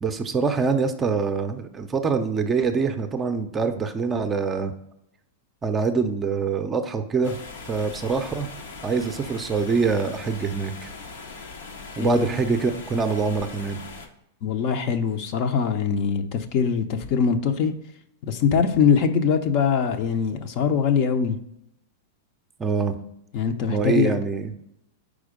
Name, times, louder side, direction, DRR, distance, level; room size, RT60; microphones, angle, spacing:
voice 1, 0.0-4.7 5.6-7.4 7.7-8.5 8.8-10.9 12.0-13.8 22.6-23.0 23.7-24.5, right 5 dB, 15° right, 7 dB, 0.5 m, -24 dB
sound 1, 7.2-14.1, left 4 dB, 90° left, 1.0 m, -40 dB
voice 2, 12.0-12.3 14.4-17.7 18.3-21.4 23.3-24.1, left 6 dB, 45° left, 8 dB, 0.6 m, -22 dB
5.0 x 4.4 x 5.0 m, 0.78 s
supercardioid pair, 150°, 0 cm